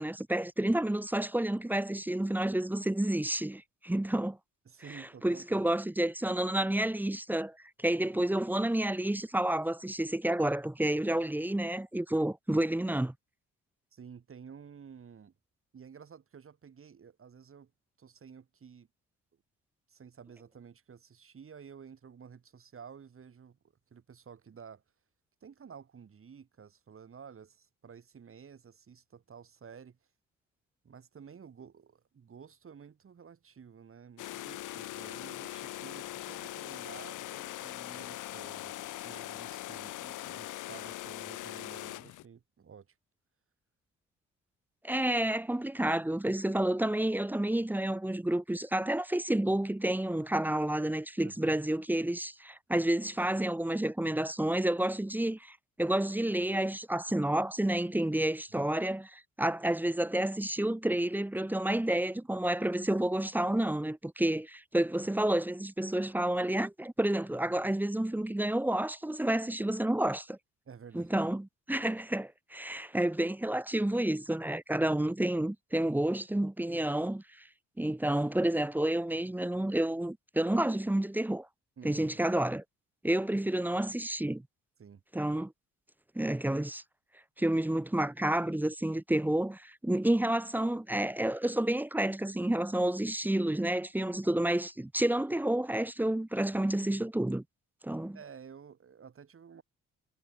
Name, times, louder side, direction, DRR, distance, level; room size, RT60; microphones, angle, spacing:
voice 1, 0.0-4.4 5.2-13.1 44.8-70.4 70.9-77.2 77.8-81.5 81.8-82.6 83.0-84.4 85.1-85.5 86.1-86.8 87.4-97.4 97.8-98.2, right 1 dB, 5° right, 0.7 m, -30 dB
voice 2, 4.7-5.6 13.9-15.3 15.7-17.7 18.0-18.9 19.9-23.6 23.9-24.8 25.4-30.0 30.8-42.9 51.2-51.6 58.5-58.7 70.7-71.1 81.8-82.2 84.8-85.0 98.1-99.6, right 7 dB, 45° right, 6.1 m, -52 dB
sound 1, 34.2-42.2, left 15 dB, 80° left, 1.5 m, -41 dB
cardioid pair, 90°, 30 cm